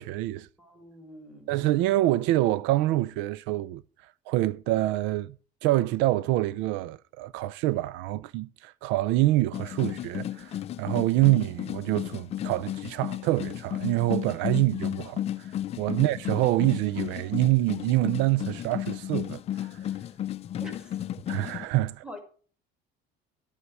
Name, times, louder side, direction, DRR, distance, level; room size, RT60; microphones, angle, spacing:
voice 1, 0.0-0.5 1.5-3.8 4.3-5.3 5.6-15.2 15.8-19.7 21.3-22.0, right 16 dB, 75° right, 0.4 m, -26 dB
voice 2, 0.6-1.5 15.9-16.1 20.6-21.0 22.0-22.2, equal, 5° right, 2.1 m, -44 dB
sound 1, 9.5-21.6, left 11 dB, 30° left, 0.5 m, -34 dB
11.5 x 8.2 x 4.7 m
cardioid pair, 170°, 19 cm